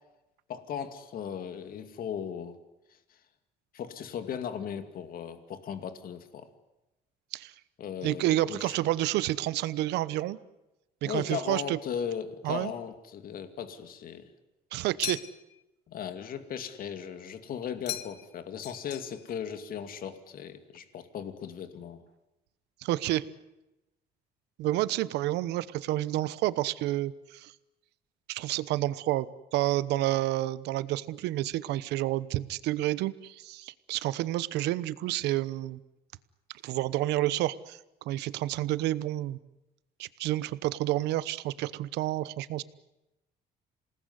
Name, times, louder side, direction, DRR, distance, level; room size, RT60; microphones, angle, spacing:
voice 1, 0.5-2.6 2.9-3.2 3.7-6.5 7.8-8.8 11.0-14.3 15.9-22.0, left 8 dB, 60° left, 9 dB, 2.4 m, -37 dB
voice 2, 8.0-10.4 11.0-11.8 12.4-12.7 14.7-15.2 22.8-23.3 24.6-27.5 28.3-35.8 36.6-37.8 38.0-39.4 40.0-42.6, right 15 dB, 85° right, 17 dB, 1.0 m, -29 dB
sound 1, 15.0-15.6 17.9-18.4 18.6-19.4, left 14 dB, 80° left, 1.3 m, -38 dB
27.5 x 19.5 x 9.7 m, 0.97 s
cardioid pair, 110°, 17 cm